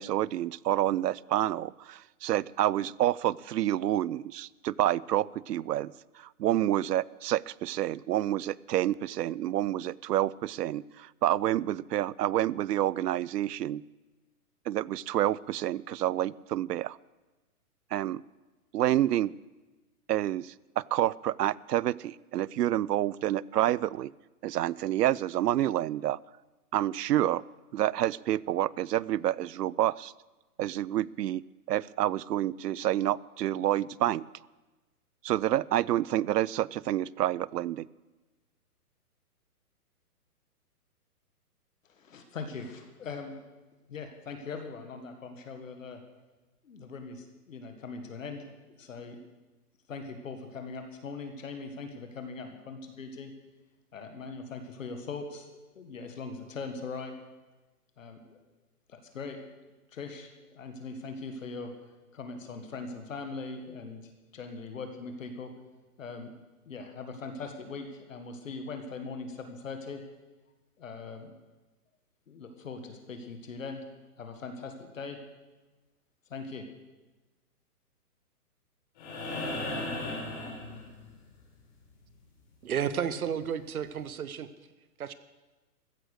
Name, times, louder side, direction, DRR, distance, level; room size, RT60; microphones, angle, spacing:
voice 1, 0.0-5.9 6.4-13.8 14.7-17.0 17.9-18.2 18.7-19.3 20.1-24.1 24.4-26.2 26.7-27.4 27.7-30.1 30.6-31.4 31.7-34.2 35.2-37.9, right 13 dB, 85° right, 23 dB, 0.5 m, -28 dB
voice 2, 41.9-43.4 43.9-46.0 46.6-49.2 49.9-53.3 53.9-55.5 55.7-57.1 58.0-58.4 58.9-59.4 59.9-61.7 62.1-65.5 66.0-66.3 66.7-70.0 70.8-71.3 72.3-73.8 74.2-75.2 76.3-76.6, left 4 dB, 55° left, 6 dB, 1.7 m, -41 dB
sound 1, 79.0-81.3 83.1-83.2, left 2 dB, 30° left, 4.2 m, -36 dB
voice 3, 82.6-84.5 85.0-85.1, right 8 dB, 65° right, 14 dB, 0.9 m, -32 dB
14.5 x 10.0 x 6.5 m, 1.2 s
hypercardioid pair, 175°, 47 cm